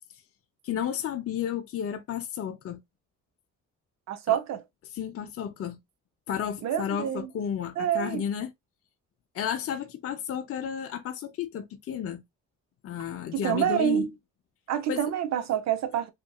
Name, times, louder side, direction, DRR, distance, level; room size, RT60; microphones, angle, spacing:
voice 1, 0.6-2.8 4.3-4.4 4.9-5.8 6.3-8.5 9.3-12.2 12.8-14.1 14.9-15.0, left 9 dB, 50° left, 0.5 m, -32 dB
voice 2, 4.1-4.6 6.6-7.3 7.8-8.2 13.3-14.1 14.7-16.1, right 10 dB, 60° right, 0.6 m, -27 dB
2.9 x 2.6 x 2.2 m
cardioid pair, 90°, 30 cm